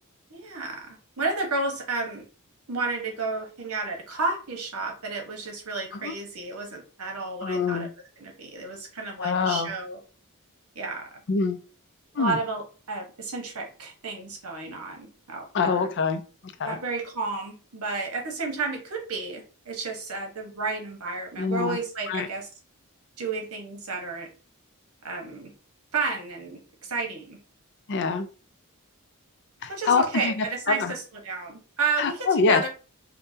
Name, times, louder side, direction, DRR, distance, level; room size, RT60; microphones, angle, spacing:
voice 1, 0.3-2.2 2.7-7.9 8.2-10.0 10.7-11.0 12.2-15.9 16.6-22.5 23.2-24.3 25.0-25.5 25.9-27.4 29.7-32.7, right 3 dB, 75° right, 2 dB, 1.1 m, -32 dB
voice 2, 7.4-7.9 9.2-9.7 11.3-11.6 12.2-12.4 15.5-16.8 21.4-21.8 22.1-22.3 27.9-28.3 29.6-30.9 32.0-32.7, left 4 dB, 55° left, 9 dB, 0.5 m, -25 dB
5.3 x 2.2 x 2.7 m, 0.36 s
head